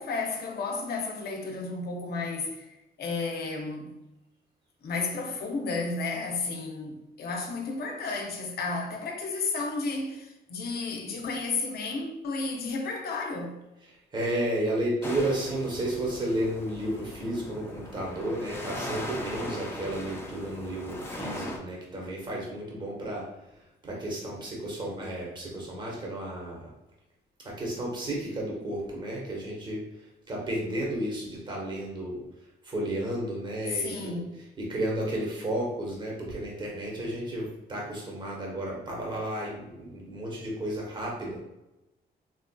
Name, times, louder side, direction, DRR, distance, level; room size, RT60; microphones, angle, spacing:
voice 1, 0.0-2.7 3.0-3.9 4.8-13.6 33.7-34.4, left 3 dB, 65° left, 0.7 m, -32 dB
voice 2, 14.1-23.2 23.8-26.7 27.4-29.8 30.3-32.2 32.7-34.1 34.6-41.4, right 1 dB, 25° right, 1.0 m, -32 dB
sound 1, 15.0-21.6, left 1 dB, 15° left, 0.5 m, -39 dB
3.9 x 2.5 x 2.3 m
cardioid pair, 125°, 17 cm